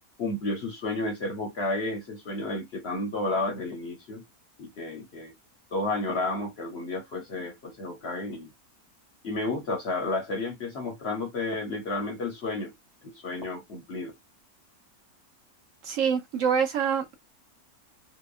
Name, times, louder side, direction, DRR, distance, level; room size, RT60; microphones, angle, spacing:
voice 1, 0.2-4.2 4.6-5.3 5.7-8.5 9.2-12.7 13.0-14.2, left 2 dB, 55° left, 0.8 m, -31 dB
voice 2, 15.8-17.2, right 7 dB, 65° right, 0.9 m, -26 dB
2.8 x 2.2 x 2.3 m
omnidirectional pair, 1.6 m